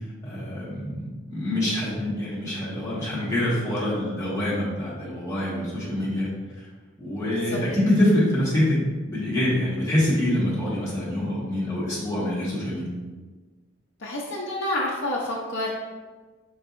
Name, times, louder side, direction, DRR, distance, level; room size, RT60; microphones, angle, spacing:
voice 1, 0.2-6.3 6.5-6.7 7.0-12.9, left 1 dB, 15° left, -8 dB, 1.2 m, -25 dB
voice 2, 14.0-15.7, left 1 dB, 60° left, -5 dB, 0.6 m, -28 dB
4.5 x 3.9 x 2.5 m, 1.3 s
head